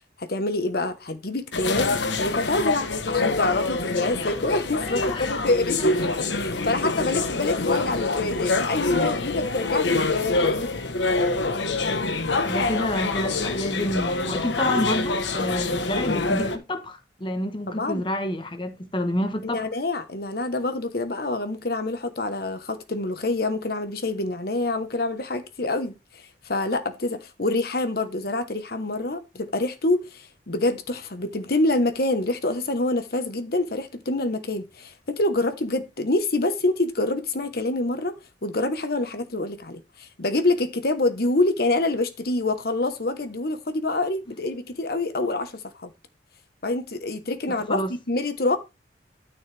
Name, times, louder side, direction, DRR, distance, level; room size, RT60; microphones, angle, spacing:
voice 1, 0.2-10.7 17.7-18.0 19.4-26.0 26.5-38.1 38.4-45.9 46.6-47.8 48.1-48.6, left 2 dB, 60° left, 1.2 m, -26 dB
sound 1, 1.5-16.6, left 3 dB, 90° left, 1.2 m, -25 dB
voice 2, 4.9-5.4 5.8-5.9 12.3-19.7 47.6-47.9, left 1 dB, 30° left, 1.2 m, -29 dB
13.0 x 6.3 x 3.4 m
head